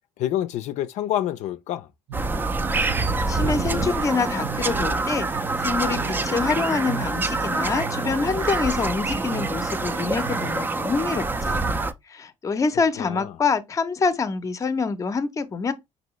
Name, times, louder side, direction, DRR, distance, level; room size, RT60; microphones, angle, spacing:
voice 1, 0.2-1.9 13.0-13.3, left 12 dB, 70° left, 0.4 m, -27 dB
Bird vocalization bird call bird song, 2.1-11.9, right 3 dB, 15° right, 0.4 m, -26 dB
sound 1, 2.1-10.5, right 4 dB, 50° right, 0.8 m, -36 dB
voice 2, 3.3-11.6 12.1-15.7, left 4 dB, 25° left, 0.6 m, -26 dB
sound 2, 3.4-5.5 5.8-6.8 7.1-7.2 8.0-8.8, right 8 dB, 80° right, 0.9 m, -39 dB
5.3 x 2.7 x 3.0 m
cardioid pair, 130°, 12 cm